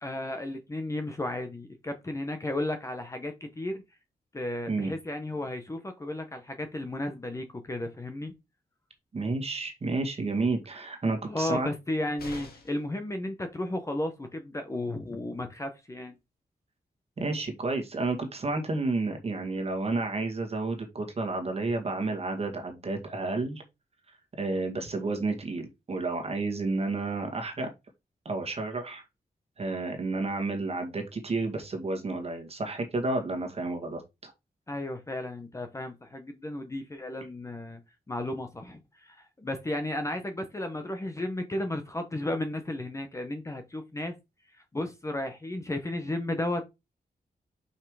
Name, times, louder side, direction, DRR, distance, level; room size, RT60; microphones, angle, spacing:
voice 1, 0.0-3.8 4.3-8.3 11.3-16.2 34.7-37.8 38.1-44.1 44.7-46.6, left 1 dB, 20° left, 0.9 m, -34 dB
voice 2, 9.1-11.7 17.2-23.6 24.4-27.7 28.3-29.0 29.6-34.3, right 3 dB, 40° right, 2.0 m, -31 dB
sound 1, 12.2-12.9 14.9-15.0 15.3-15.4, left 3 dB, 80° left, 2.2 m, -45 dB
5.7 x 5.5 x 4.8 m
wide cardioid pair, 180°, 16 cm